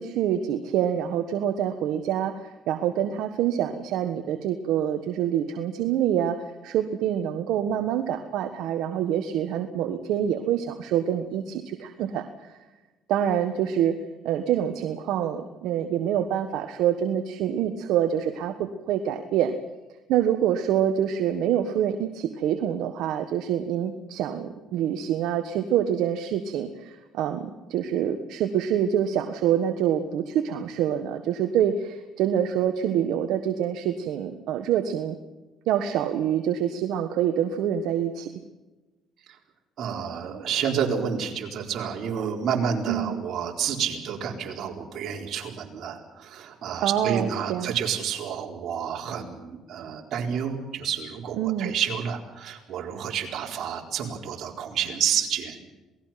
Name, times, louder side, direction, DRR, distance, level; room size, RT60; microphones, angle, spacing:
voice 1, 0.0-12.6 13.1-14.0 14.2-19.5 20.1-27.4 27.7-35.2 35.7-38.3 42.9-43.2 46.8-47.7 51.4-51.7, right 10 dB, 80° right, 7 dB, 1.4 m, -26 dB
voice 2, 39.8-55.6, right 7 dB, 60° right, 1 dB, 4.2 m, -29 dB
27.5 x 20.0 x 5.9 m, 1.1 s
cardioid pair, 85°, 0 cm